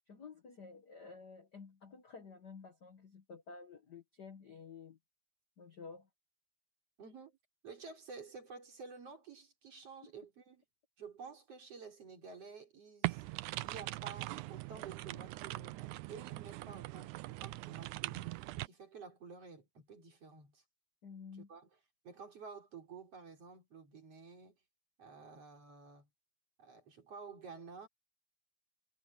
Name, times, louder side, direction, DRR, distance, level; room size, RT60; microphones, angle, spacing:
voice 1, 0.1-5.0 5.6-6.1 21.0-21.5, left 5 dB, 50° left, 1.3 m, -52 dB
voice 2, 7.0-7.4 7.6-10.6 11.0-20.6 21.3-21.7 22.0-24.6 25.0-26.1 26.6-27.9, right 5 dB, 50° right, 5.2 m, -52 dB
sound 1, 13.0-18.7, right 19 dB, 80° right, 2.1 m, -41 dB
omnidirectional pair, 3.5 m